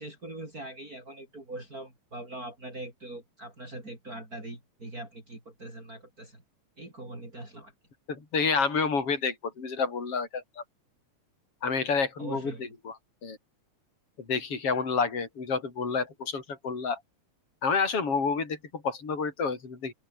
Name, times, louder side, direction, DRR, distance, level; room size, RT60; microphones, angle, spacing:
voice 1, 0.0-6.4 6.8-7.7 12.2-12.6, right 2 dB, 30° right, 7.1 m, -42 dB
voice 2, 8.1-10.6 11.6-12.5 12.9-13.0 13.2-13.4 14.3-17.0 17.6-19.9, left 5 dB, 50° left, 6.1 m, -29 dB
omnidirectional pair, 3.3 m